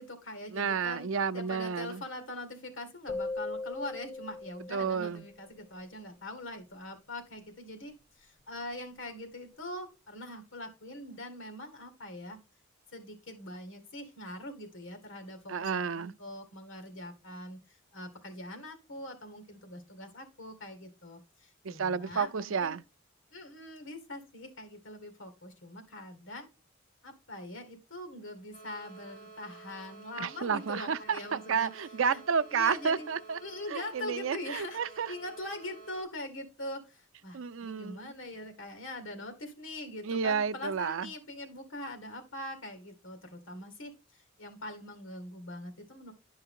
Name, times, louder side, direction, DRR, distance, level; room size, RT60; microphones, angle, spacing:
voice 1, 0.0-1.1 1.3-12.4 12.9-22.8 23.3-26.5 27.0-31.7 32.1-32.2 32.5-33.1 33.4-34.8 35.1-43.9 44.4-46.1, left 1 dB, 80° left, 2.1 m, -43 dB
voice 2, 0.5-2.0 4.7-5.3 15.5-16.1 21.6-22.8 30.2-33.4 33.7-35.1 37.3-38.1 40.0-41.1, right 6 dB, 80° right, 0.5 m, -31 dB
sound 1, 3.1-5.3, left 3 dB, 25° left, 0.8 m, -38 dB
sound 2, 28.5-36.0, right 4 dB, 45° left, 5.1 m, -51 dB
10.5 x 5.5 x 3.7 m
head